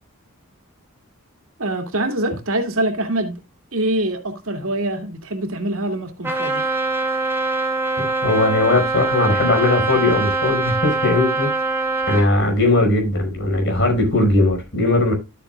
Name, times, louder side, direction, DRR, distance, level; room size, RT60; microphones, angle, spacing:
voice 1, 1.6-3.4 3.7-6.6, right 1 dB, 75° right, 2.4 m, -24 dB
Trumpet, 6.2-12.3, right 3 dB, 10° right, 2.4 m, -23 dB
voice 2, 8.0-11.5 12.1-15.1, left 2 dB, 60° left, 5.0 m, -19 dB
13.0 x 8.4 x 2.3 m
head